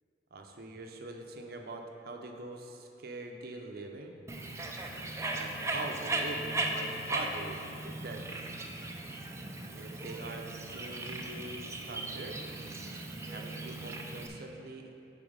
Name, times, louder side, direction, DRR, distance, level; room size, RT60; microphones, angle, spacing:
voice 1, 0.3-4.2 5.4-8.3 9.8-12.4 13.3-14.9, right 2 dB, 60° right, 3 dB, 0.6 m, -43 dB
Bird, 4.3-14.3, right 2 dB, 15° right, 0.5 m, -37 dB
7.0 x 4.4 x 5.1 m, 2.7 s
head